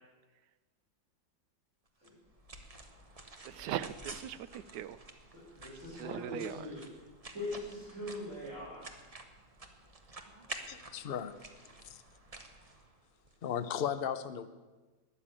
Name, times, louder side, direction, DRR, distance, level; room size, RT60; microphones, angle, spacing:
sound 1, 2.0-13.4, right 2 dB, 25° right, 0.9 m, -50 dB
voice 1, 3.4-5.0 6.0-6.5, right 11 dB, 75° right, 14 dB, 1.2 m, -39 dB
voice 2, 5.3-7.0 7.3-8.9, left 2 dB, 40° right, -10 dB, 5.6 m, -42 dB
voice 3, 10.5-11.5 11.8-12.0 13.4-14.5, left 8 dB, 50° left, 10 dB, 0.7 m, -36 dB
13.0 x 9.9 x 8.8 m, 1.2 s
omnidirectional pair, 1.9 m